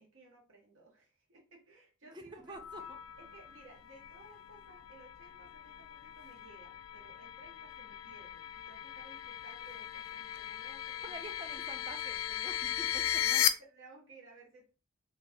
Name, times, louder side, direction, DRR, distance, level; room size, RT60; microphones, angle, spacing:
voice 1, 0.0-2.6 3.2-11.3 12.9-13.0 13.7-14.7, right 2 dB, 75° right, -1 dB, 0.8 m, -58 dB
voice 2, 2.1-3.0 11.0-13.4, right 2 dB, 20° right, 6 dB, 0.4 m, -48 dB
sound 1, 2.5-13.5, left 11 dB, 85° left, 0.3 m, -37 dB
2.7 x 2.2 x 3.3 m, 0.34 s
head